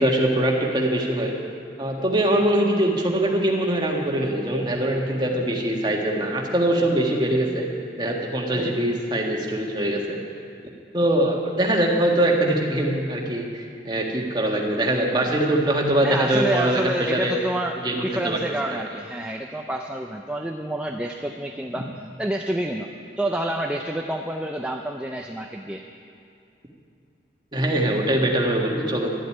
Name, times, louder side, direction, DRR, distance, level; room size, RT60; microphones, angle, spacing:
voice 1, 0.0-1.3 1.8-7.7 8.0-10.2 10.9-17.3 17.8-18.4 18.7-18.8 27.5-29.1, right 1 dB, 25° right, 0 dB, 1.6 m, -22 dB
voice 2, 16.0-21.9 22.2-22.9 23.2-25.8, right 1 dB, 5° right, 1 dB, 0.5 m, -28 dB
12.5 x 8.0 x 9.9 m, 2.5 s
head